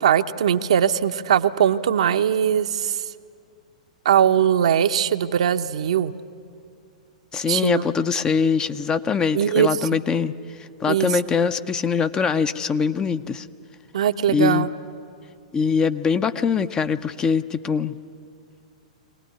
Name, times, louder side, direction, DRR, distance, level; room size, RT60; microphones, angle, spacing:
voice 1, 0.0-3.0 4.0-6.1 7.5-7.8 9.3-9.7 10.9-11.1 13.9-14.7, right 9 dB, 65° right, 8 dB, 0.8 m, -20 dB
voice 2, 7.3-10.3 10.8-13.5 14.3-14.7 15.5-18.0, left 6 dB, 20° left, 11 dB, 0.7 m, -22 dB
23.5 x 18.5 x 9.4 m, 2.3 s
figure-of-eight pair, 105°, 4 cm